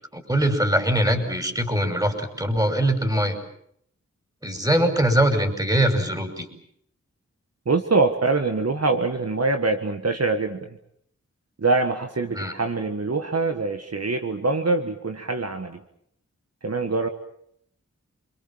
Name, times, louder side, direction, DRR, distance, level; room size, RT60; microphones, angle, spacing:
voice 1, 0.1-3.4 4.4-6.5 12.3-12.5, right 1 dB, 15° right, 7 dB, 5.7 m, -22 dB
voice 2, 7.6-10.8 11.6-15.8 16.6-17.1, right 3 dB, 60° right, 6 dB, 1.7 m, -24 dB
28.0 x 23.0 x 7.4 m, 0.70 s
cardioid pair, 40°, 29 cm